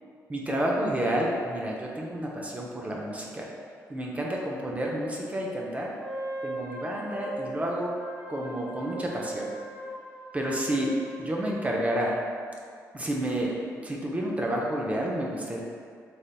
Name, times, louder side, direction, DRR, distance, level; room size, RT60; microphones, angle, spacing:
voice 1, 0.3-3.5 3.9-5.9 6.4-7.9 8.3-9.5 10.3-10.9 11.2-12.2 12.9-15.6, right 1 dB, 20° right, -2 dB, 0.4 m, -30 dB
Wind instrument woodwind instrument, 5.9-11.5, right 1 dB, 70° right, 1.3 m, -38 dB
3.3 x 2.7 x 2.2 m, 2.1 s
supercardioid pair, 65°, 7 cm